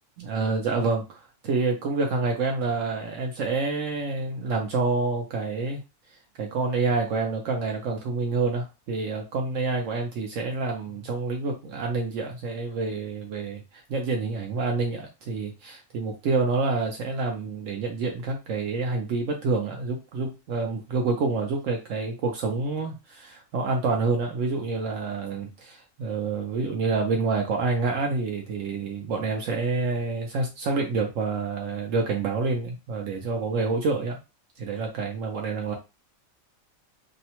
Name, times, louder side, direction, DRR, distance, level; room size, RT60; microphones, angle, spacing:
voice 1, 0.2-5.8 6.4-34.2 34.6-35.7, right 4 dB, 70° right, 2 dB, 0.9 m, -28 dB
2.7 x 2.1 x 2.8 m, 0.27 s
omnidirectional pair, 1.4 m